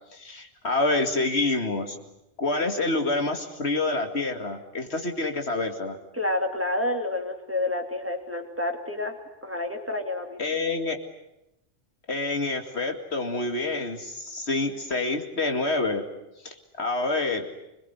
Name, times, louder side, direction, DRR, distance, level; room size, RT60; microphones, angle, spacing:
voice 1, 0.1-2.0 2.4-6.0 10.4-11.0 12.1-16.0 16.4-17.5, left 2 dB, 65° left, 5 dB, 2.5 m, -27 dB
voice 2, 6.1-9.2 9.4-10.4, left 2 dB, 10° right, 3 dB, 2.7 m, -29 dB
26.0 x 21.5 x 9.6 m, 0.88 s
omnidirectional pair, 1.2 m